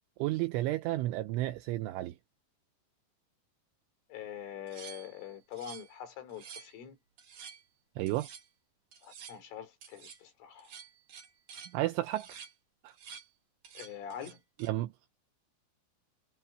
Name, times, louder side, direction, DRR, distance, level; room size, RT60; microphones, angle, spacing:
voice 1, 0.2-2.2 8.0-8.3 11.7-12.3 12.8-12.9 14.6-14.9, right 16 dB, 80° right, 3.1 m, -32 dB
voice 2, 4.1-7.0 9.0-10.7 13.7-14.4, left 9 dB, 75° left, 6.4 m, -44 dB
sound 1, 4.7-6.0 6.3-6.8 7.2-7.6 8.1-8.5 8.9-9.4 9.8-10.2 10.6-11.8 12.1-12.5 12.9-13.3 13.6-14.7, right 7 dB, 50° right, 3.4 m, -50 dB
omnidirectional pair, 5.7 m